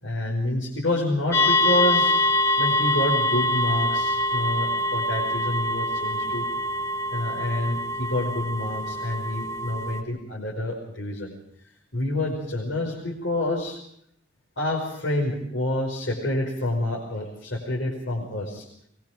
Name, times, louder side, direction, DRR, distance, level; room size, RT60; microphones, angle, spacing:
voice 1, 0.0-2.2 2.6-6.5 7.1-11.3 11.9-13.8 14.6-18.7, left 1 dB, 85° left, -4 dB, 5.2 m, -28 dB
sound 1, 1.3-10.0, left 1 dB, 15° left, 1.9 m, -24 dB
23.0 x 22.0 x 5.1 m, 0.70 s
head